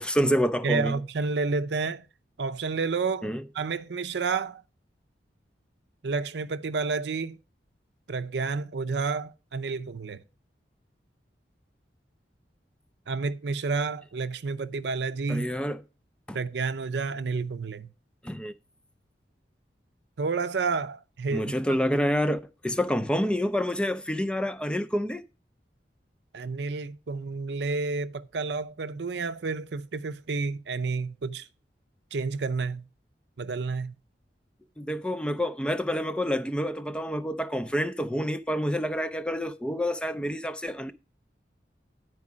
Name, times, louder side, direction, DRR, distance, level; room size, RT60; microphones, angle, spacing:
voice 1, 0.0-1.0 3.2-3.4 15.3-15.8 16.3-16.4 18.2-18.5 21.3-25.2 34.8-40.9, equal, 5° left, 0.4 m, -28 dB
voice 2, 0.6-2.0 2.4-4.6 6.0-7.4 8.1-10.2 13.1-15.5 16.3-17.9 20.2-21.8 26.3-31.5 32.1-32.9 33.4-33.9, right 4 dB, 70° right, 0.6 m, -30 dB
9.6 x 4.7 x 6.1 m
head